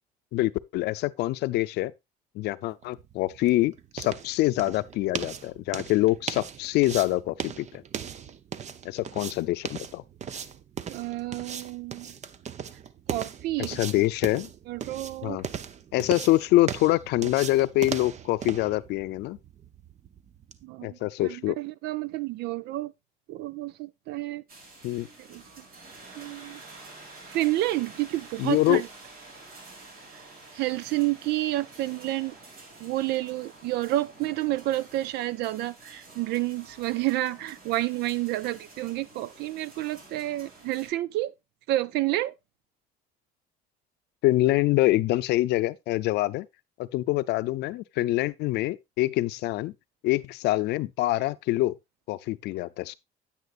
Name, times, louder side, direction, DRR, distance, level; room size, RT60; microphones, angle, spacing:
voice 1, 0.3-1.9 2.3-7.8 8.8-10.0 13.6-14.5 15.2-15.4 15.9-19.4 20.8-21.6 24.8-25.1 28.4-28.8 44.2-46.5 46.8-49.7 50.0-51.7 52.1-52.9, left 17 dB, 85° left, 0.6 m, -25 dB
sound 1, 2.8-20.6, right 8 dB, 45° right, 0.7 m, -38 dB
voice 2, 10.9-12.1 13.1-14.0 14.7-15.4 20.6-22.9 23.3-24.4 25.2-25.6 26.2-26.6 27.3-28.9 30.5-32.3 32.8-41.3 41.7-42.3, right 16 dB, 85° right, 0.6 m, -30 dB
sound 2, 24.5-40.9, right 3 dB, 60° right, 3.1 m, -49 dB
9.4 x 8.9 x 2.5 m
cardioid pair, 110°, 17 cm